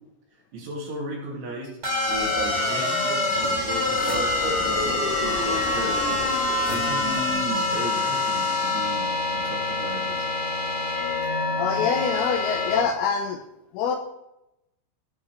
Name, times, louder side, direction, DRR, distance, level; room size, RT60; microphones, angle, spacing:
voice 1, 0.5-1.8 2.1-6.4 6.7-10.3, right 1 dB, 90° right, -7 dB, 4.5 m, -35 dB
sound 1, 1.8-12.8, left 2 dB, 25° right, 1.7 m, -25 dB
sound 2, 3.2-8.9, left 5 dB, 70° left, 2.7 m, -38 dB
sound 3, 3.4-4.9 6.1-7.2, right 3 dB, 60° right, 2.6 m, -40 dB
voice 2, 11.6-13.4 13.7-14.0, left 6 dB, 85° left, 3 dB, 2.3 m, -25 dB
17.5 x 8.8 x 3.1 m, 0.87 s
omnidirectional pair, 5.4 m